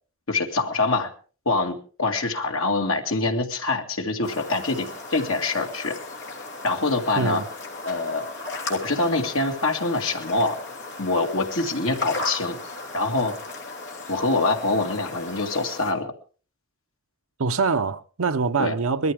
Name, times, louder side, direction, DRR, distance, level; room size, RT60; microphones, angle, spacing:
voice 1, 0.3-1.1 1.5-5.9 6.6-7.4 7.8-8.3 8.7-10.6 11.0-12.6 12.9-13.3 14.1-16.1 18.6-18.8, left 3 dB, 75° left, 2.2 m, -25 dB
sound 1, 4.2-15.9, left 2 dB, 55° left, 3.1 m, -36 dB
voice 2, 17.4-19.1, right 4 dB, 80° right, 0.8 m, -24 dB
21.0 x 13.5 x 3.5 m
head